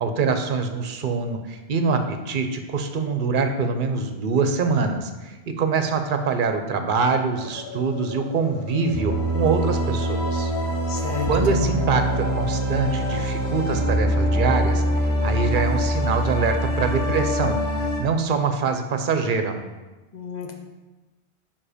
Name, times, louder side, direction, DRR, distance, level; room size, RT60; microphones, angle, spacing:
voice 1, 0.0-10.5 11.3-17.6 18.0-19.6, right 4 dB, 55° right, 6 dB, 0.8 m, -24 dB
sound 1, 7.4-13.9, left 3 dB, 80° left, 1.0 m, -39 dB
sound 2, 8.9-18.0, equal, 10° right, 1.9 m, -24 dB
voice 2, 10.9-11.7 20.1-20.5, left 6 dB, 45° left, 3 dB, 0.8 m, -31 dB
5.5 x 5.0 x 5.0 m, 1.2 s
omnidirectional pair, 1.1 m